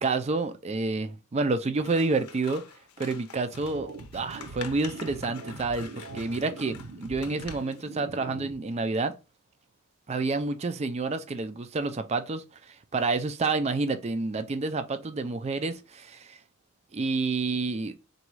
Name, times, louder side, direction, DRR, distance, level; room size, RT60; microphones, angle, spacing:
voice 1, 0.0-2.6 3.0-3.9 4.1-9.1 10.1-16.4 16.9-17.9, right 3 dB, 30° right, 0.4 m, -29 dB
Scissors, 1.7-7.9, left 7 dB, 85° left, 0.6 m, -47 dB
sound 1, 3.5-8.5, right 3 dB, 65° right, 0.7 m, -43 dB
4.0 x 2.3 x 4.6 m
head